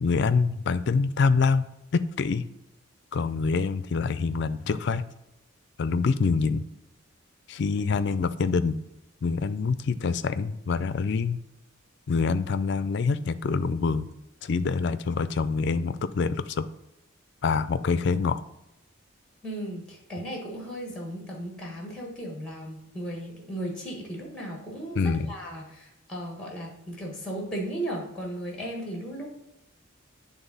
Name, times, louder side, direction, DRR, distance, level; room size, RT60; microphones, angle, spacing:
voice 1, 0.0-2.4 3.1-5.0 5.8-6.6 7.5-8.8 9.2-11.4 12.1-14.1 14.4-16.6 17.4-18.4 25.0-25.3, left 4 dB, 55° left, 13 dB, 0.4 m, -25 dB
voice 2, 19.4-25.0 25.3-29.3, right 1 dB, 5° left, 0 dB, 1.4 m, -36 dB
9.2 x 3.5 x 4.0 m, 0.90 s
head